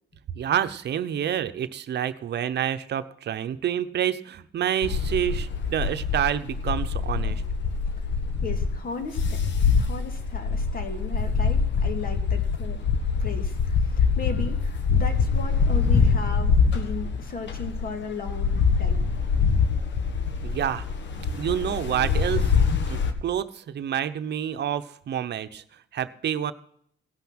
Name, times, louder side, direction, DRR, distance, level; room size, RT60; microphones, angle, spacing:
voice 1, 0.3-7.4 20.4-20.9 21.4-22.5 22.9-25.6 25.9-26.5, right 10 dB, 60° right, 11 dB, 0.9 m, -28 dB
sound 1, 4.8-23.1, left 5 dB, 65° left, 1.5 m, -24 dB
voice 2, 8.4-9.4 9.7-12.8 13.2-19.0, left 4 dB, 45° left, 6 dB, 2.2 m, -36 dB
17.0 x 5.8 x 6.0 m, 0.66 s
cardioid pair, 90°, 20 cm